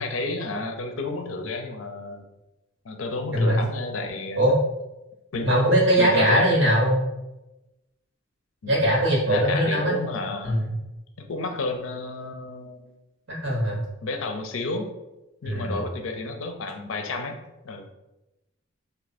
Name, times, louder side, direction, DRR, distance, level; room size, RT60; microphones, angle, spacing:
voice 1, 0.0-2.2 2.8-4.5 5.3-5.5 6.0-6.6 8.6-8.8 9.3-10.6 11.2-12.9 14.0-14.9 15.4-17.4 17.6-17.9, left 2 dB, 75° left, 5 dB, 0.6 m, -31 dB
voice 2, 5.4-7.0 8.7-10.0 10.4-10.6 13.3-13.8 15.4-15.8, right 1 dB, 60° right, -2 dB, 1.4 m, -21 dB
3.4 x 2.7 x 4.1 m, 0.99 s
head